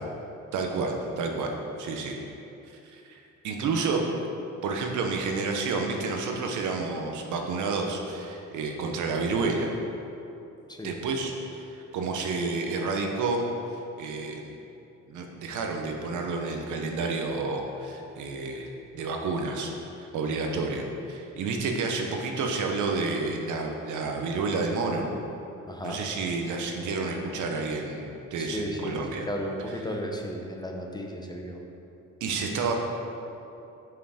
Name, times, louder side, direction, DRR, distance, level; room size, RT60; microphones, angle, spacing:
voice 1, 0.5-1.5 1.8-2.2 2.8-4.1 4.6-9.7 10.8-13.4 14.0-14.4 15.1-18.7 18.9-19.7 20.0-25.1 25.8-29.3 32.2-32.7, right 4 dB, 80° right, 2 dB, 0.9 m, -30 dB
voice 2, 25.7-26.0 28.4-31.6, equal, 15° left, 1 dB, 0.8 m, -34 dB
5.8 x 5.0 x 4.9 m, 2.8 s
cardioid pair, 90°, 30 cm